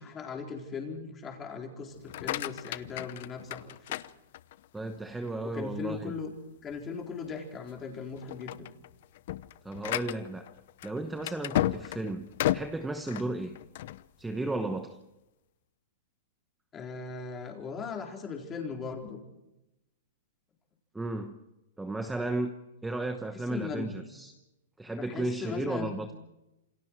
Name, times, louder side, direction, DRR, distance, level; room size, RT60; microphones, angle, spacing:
voice 1, 0.0-4.0 5.4-6.3 6.6-8.7 16.7-19.2 23.3-23.9 25.0-25.9, left 5 dB, 15° left, 1 dB, 4.2 m, -38 dB
sound 1, 2.0-4.8 5.3-5.7 6.2-6.3 6.7-6.9 7.5-7.8 8.2-14.0, left 14 dB, 50° left, 0.8 m, -34 dB
voice 2, 4.7-6.1 9.6-10.5 10.8-13.6 14.2-15.0 20.9-21.4 21.8-22.5 22.8-24.3 24.8-26.1, right 2 dB, 5° right, 7 dB, 1.0 m, -34 dB
28.0 x 26.0 x 4.7 m, 0.95 s
hypercardioid pair, 165°, 0 cm